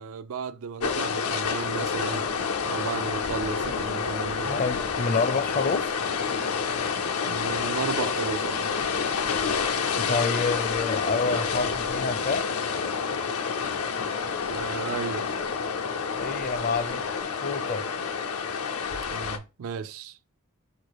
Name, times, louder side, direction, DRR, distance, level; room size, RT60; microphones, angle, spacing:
voice 1, 0.0-2.3 2.6-4.5 7.2-8.7 14.5-15.3 19.1-20.2, right 6 dB, 65° right, 0.4 m, -34 dB
sound 1, 0.8-19.4, left 5 dB, 90° left, 0.6 m, -28 dB
voice 2, 4.4-6.0 10.0-12.5 16.2-17.1 17.4-17.9, left 4 dB, 40° left, 0.5 m, -28 dB
4.2 x 2.6 x 4.8 m
head